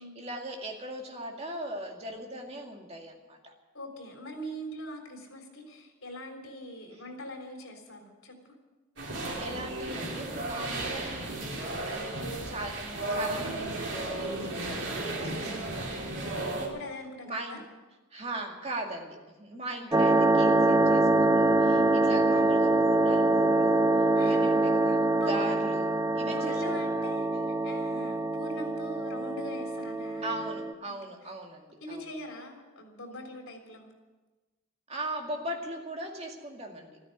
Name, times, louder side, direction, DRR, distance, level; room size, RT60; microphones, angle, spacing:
voice 1, 0.0-3.5 6.9-7.0 9.2-16.5 17.2-17.6 18.1-23.8 24.2-26.8 30.2-32.1 34.9-37.0, right 1 dB, 30° right, 1 dB, 2.2 m, -39 dB
voice 2, 3.7-8.4 16.5-17.6 19.5-19.9 21.7-21.9 24.2-24.4 25.2-25.4 26.2-30.3 30.8-31.0 31.8-33.9, equal, 85° left, 3 dB, 3.6 m, -42 dB
sound 1, 9.0-16.7, right 2 dB, 60° right, 3.5 m, -34 dB
sound 2, 19.9-30.7, right 2 dB, 15° right, 0.5 m, -24 dB
14.0 x 10.0 x 9.6 m, 1.2 s
head